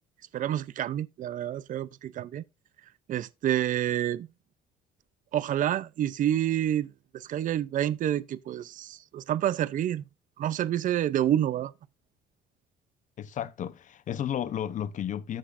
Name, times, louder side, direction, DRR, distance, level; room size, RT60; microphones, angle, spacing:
voice 1, 0.3-2.4 3.1-4.3 5.3-6.9 7.1-10.0 10.4-11.7, right 11 dB, 50° right, 0.5 m, -28 dB
voice 2, 13.2-15.4, left 10 dB, 50° left, 0.8 m, -33 dB
14.0 x 6.2 x 2.5 m
cardioid pair, 110°, 17 cm